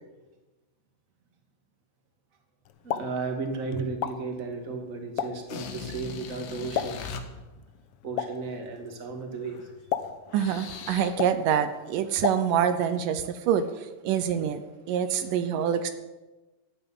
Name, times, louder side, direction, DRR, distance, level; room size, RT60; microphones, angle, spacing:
Explosion, 2.6-12.9, left 9 dB, 80° left, 1.2 m, -37 dB
voice 1, 2.8-7.0 8.0-9.6, right 4 dB, 25° right, 3 dB, 2.4 m, -34 dB
sound 1, 5.5-7.2 9.5-9.7 10.0-11.3 12.1-12.3, left 6 dB, 65° left, 2.6 m, -40 dB
voice 2, 10.3-14.6 14.9-15.9, right 8 dB, 80° right, 10 dB, 2.4 m, -26 dB
14.5 x 9.1 x 9.9 m, 1.2 s
omnidirectional pair, 3.8 m